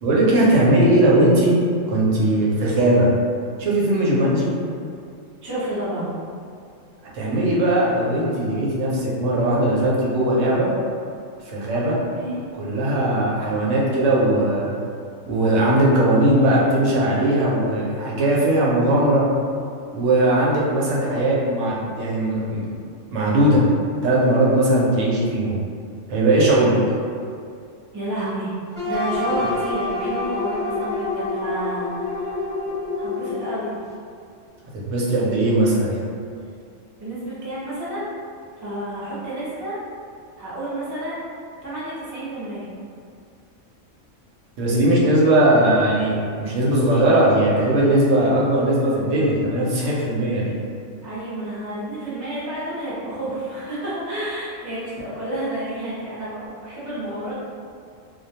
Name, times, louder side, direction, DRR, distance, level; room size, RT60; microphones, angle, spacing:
voice 1, 0.0-1.5 1.9-3.1 3.6-4.5 7.1-10.7 11.5-12.0 12.6-14.7 15.3-19.3 19.9-22.6 23.1-23.6 24.0-25.6 26.1-26.8 34.7-36.1 44.6-50.6, right 1 dB, 75° right, -5 dB, 1.0 m, -19 dB
voice 2, 5.4-6.1 12.1-12.4 27.9-28.5 28.9-32.5 33.0-33.7 37.0-38.1 38.6-39.8 40.4-41.3 41.6-42.7 51.0-57.4, right 1 dB, 25° right, -10 dB, 0.4 m, -30 dB
sound 1, 28.7-33.7, left 3 dB, 10° left, 0.8 m, -27 dB
2.3 x 2.2 x 2.7 m, 2.3 s
omnidirectional pair, 1.3 m